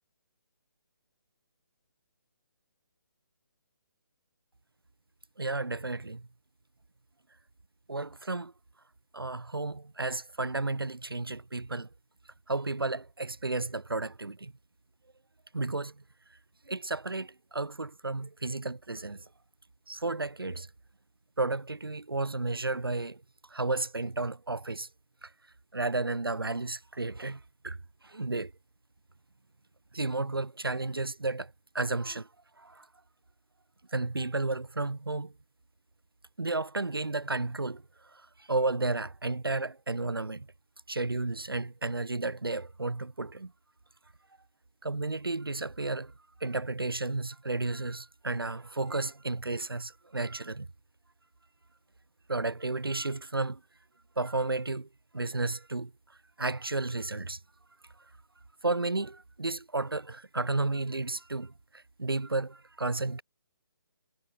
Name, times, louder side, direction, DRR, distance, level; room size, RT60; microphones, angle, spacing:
voice 1, 5.4-6.3 7.9-8.5 9.1-11.9 12.5-14.5 15.5-15.9 16.7-19.2 19.9-20.7 21.4-23.2 23.5-24.9 25.2-25.3 25.7-27.8 28.0-28.5 29.9-32.3 32.6-32.8 33.9-35.3 36.4-37.8 38.5-40.5 40.9-43.5 44.8-46.1 46.4-50.7 52.3-53.6 54.2-54.9 55.1-55.9 56.4-57.4 58.6-61.5 62.0-63.2, right 3 dB, 80° right, 2.4 m, -32 dB
figure-of-eight pair, 145°, 12 cm